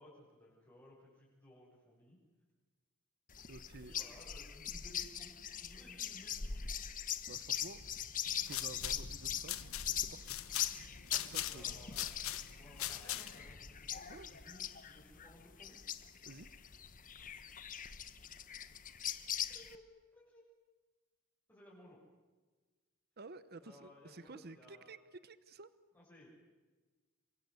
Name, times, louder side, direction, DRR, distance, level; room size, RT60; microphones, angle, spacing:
voice 1, 0.0-2.2 3.8-6.7 11.1-15.8 19.5-19.8 20.1-20.5 21.5-22.0 23.6-24.9 25.9-26.3, left 1 dB, 10° left, -9 dB, 7.3 m, -59 dB
sound 1, 3.3-19.8, left 9 dB, 40° left, 1.2 m, -42 dB
voice 2, 3.5-3.9 7.3-8.0 8.2-12.4 14.1-14.3 16.2-16.5 23.2-25.7, right 3 dB, 50° right, 14 dB, 1.0 m, -53 dB
sound 2, 8.3-13.5, left 13 dB, 75° left, 1.3 m, -42 dB
29.0 x 24.5 x 8.0 m, 1.3 s
head